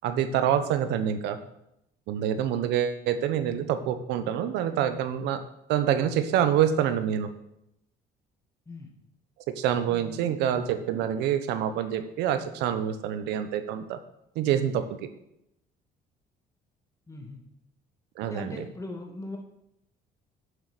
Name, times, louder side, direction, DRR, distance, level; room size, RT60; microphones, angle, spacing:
voice 1, 0.0-1.4 2.1-5.4 5.7-7.3 9.6-14.0 14.4-14.8 18.2-18.6, right 9 dB, 90° right, 10 dB, 1.1 m, -26 dB
voice 2, 9.9-10.4 17.1-17.4 18.3-19.4, left 2 dB, 20° left, 2 dB, 1.9 m, -40 dB
8.0 x 7.9 x 6.7 m, 0.82 s
cardioid pair, 110°, 17 cm